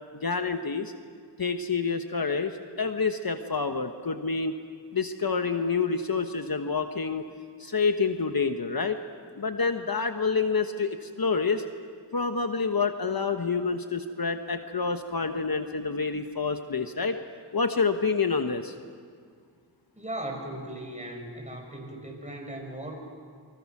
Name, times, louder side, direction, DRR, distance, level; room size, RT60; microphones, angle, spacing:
voice 1, 0.1-0.9 1.4-4.5 4.9-7.2 7.6-9.0 9.4-11.6 12.1-17.2 17.5-18.7, left 4 dB, 55° left, 7 dB, 1.2 m, -28 dB
voice 2, 19.9-22.9, right 1 dB, 15° right, 1 dB, 6.5 m, -37 dB
28.5 x 25.0 x 6.1 m, 2.1 s
wide cardioid pair, 50°, 43 cm